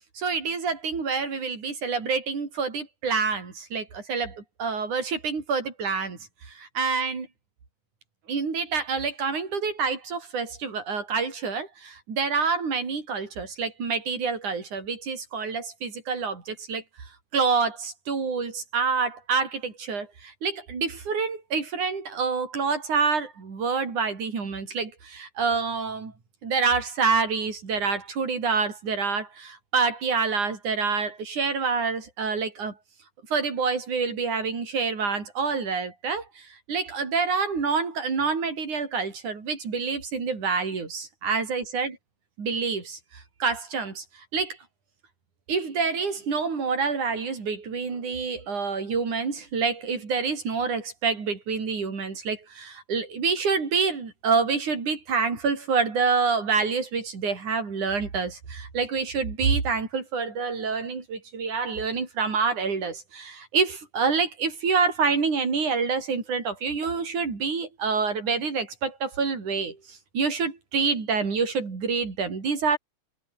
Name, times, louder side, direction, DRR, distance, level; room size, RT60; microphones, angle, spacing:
voice 1, 0.2-6.2 6.5-7.3 8.3-16.8 17.3-26.1 26.4-32.7 33.3-42.0 42.4-44.0 44.3-44.6 45.5-72.8, right 5 dB, 80° right, 6.3 m, -27 dB
omnidirectional pair, 3.4 m